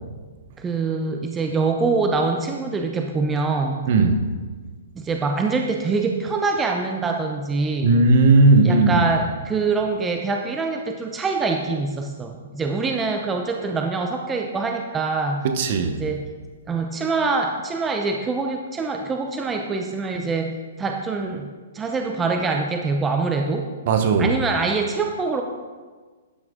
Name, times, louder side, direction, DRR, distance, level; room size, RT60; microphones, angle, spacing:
voice 1, 0.6-3.8 5.0-8.0 8.6-15.4 16.0-16.3 16.7-21.5 21.7-23.7 24.2-25.4, right 4 dB, 15° right, 3 dB, 0.6 m, -24 dB
voice 2, 7.8-9.0 15.4-15.9 23.9-24.3, right 3 dB, 50° right, 7 dB, 1.0 m, -16 dB
12.0 x 6.1 x 3.7 m, 1.4 s
hypercardioid pair, 140°, 0 cm